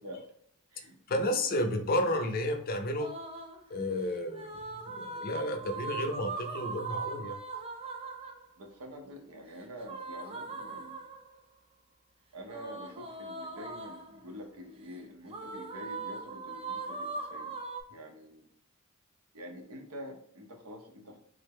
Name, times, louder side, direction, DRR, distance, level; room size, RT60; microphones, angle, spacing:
voice 1, 1.1-3.1 3.7-4.6 5.0-7.4, left 1 dB, 40° left, 5 dB, 0.4 m, -31 dB
sound 1, 3.0-3.6 4.3-8.5 9.8-11.4 12.5-14.2 15.3-17.8, right 3 dB, 25° right, 0.3 m, -40 dB
voice 2, 8.6-11.1 12.3-17.6 17.9-18.5 19.3-21.2, equal, 85° right, 3 dB, 0.7 m, -46 dB
3.4 x 2.1 x 3.5 m, 0.68 s
head